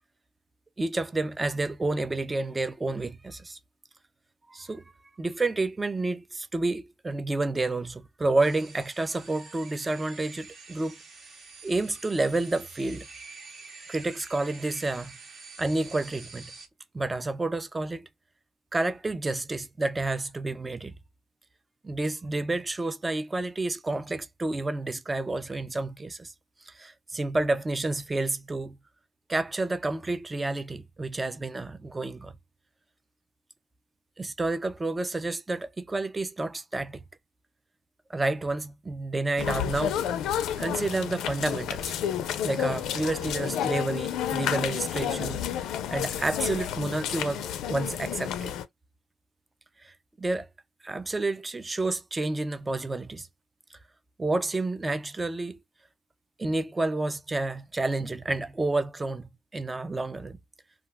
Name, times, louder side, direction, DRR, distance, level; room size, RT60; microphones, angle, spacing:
voice 1, 0.8-3.6 4.5-4.8 5.2-11.0 11.6-13.0 13.9-15.1 15.6-16.5 16.9-18.1 18.7-20.9 21.8-26.3 26.7-28.8 29.3-32.3 34.2-37.0 38.1-40.0 40.6-41.9 42.4-45.4 45.9-48.5 49.8-50.5 50.8-53.3 54.2-55.6 56.4-60.4, right 2 dB, 20° right, 0.4 m, -30 dB
sound 1, 8.4-16.7, right 4 dB, 50° right, 0.9 m, -47 dB
sound 2, 39.4-48.6, left 9 dB, 85° left, 0.4 m, -30 dB
2.4 x 2.2 x 3.3 m
cardioid pair, 90°, 0 cm